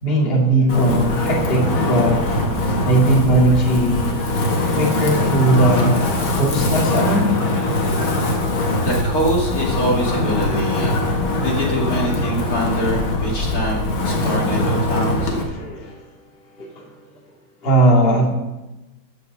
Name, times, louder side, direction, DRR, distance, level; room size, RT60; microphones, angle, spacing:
voice 1, 0.0-2.3 2.8-4.1 4.7-6.0 6.3-7.3 15.5-16.1 16.6-16.9 17.6-18.3, right 1 dB, 30° left, -1 dB, 2.4 m, -18 dB
Wind, 0.7-15.4, left 2 dB, 75° left, 2.7 m, -21 dB
voice 2, 8.8-11.0 11.4-15.3, equal, 45° left, -2 dB, 2.6 m, -24 dB
15.5 x 6.8 x 6.6 m, 1.0 s
omnidirectional pair, 2.2 m